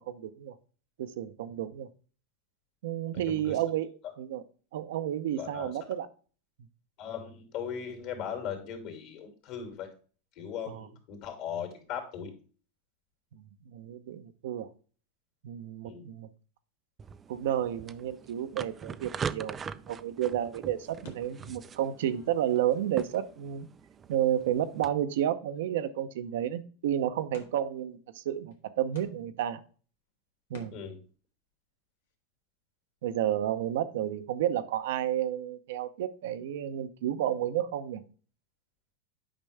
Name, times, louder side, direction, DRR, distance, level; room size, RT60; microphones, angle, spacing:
voice 1, 0.1-0.5 1.0-1.9 2.8-3.9 4.2-4.4 4.7-6.1 10.7-10.9 13.3-13.5 13.7-14.7 15.4-16.3 17.3-23.7 24.1-29.6 30.5-30.7 33.0-38.0, right 11 dB, 75° right, 10 dB, 0.7 m, -31 dB
voice 2, 3.3-3.6 5.4-5.7 7.0-9.9 10.4-12.3 15.8-16.0 30.7-31.0, left 7 dB, 55° left, 4 dB, 2.8 m, -38 dB
sound 1, 17.0-24.9, right 6 dB, 25° right, 0.4 m, -42 dB
sound 2, 21.0-23.6 24.0-24.1 24.7-24.9 25.1-25.2 25.4-26.4 27.3-27.8 28.5-28.6 28.9-29.6 30.5-31.0, left 5 dB, 85° left, 1.5 m, -55 dB
8.8 x 5.3 x 3.4 m, 0.40 s
hypercardioid pair, 115°, 0 cm